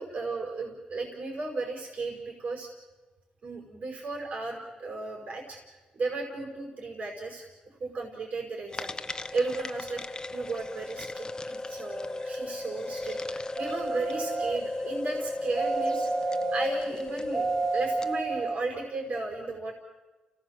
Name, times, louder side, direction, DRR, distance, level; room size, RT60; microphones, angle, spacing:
voice 1, 0.0-2.7 3.4-10.0 10.3-16.1 16.5-19.7, right 3 dB, 65° right, 0 dB, 5.4 m, -35 dB
sound 1, 8.7-18.2, left 2 dB, 30° left, 1.0 m, -35 dB
sound 2, 13.6-14.6 15.6-16.7 17.3-18.6 19.2-19.3, right 4 dB, 20° right, 2.0 m, -31 dB
30.0 x 17.5 x 7.6 m, 1.2 s
cardioid pair, 70°, 3 cm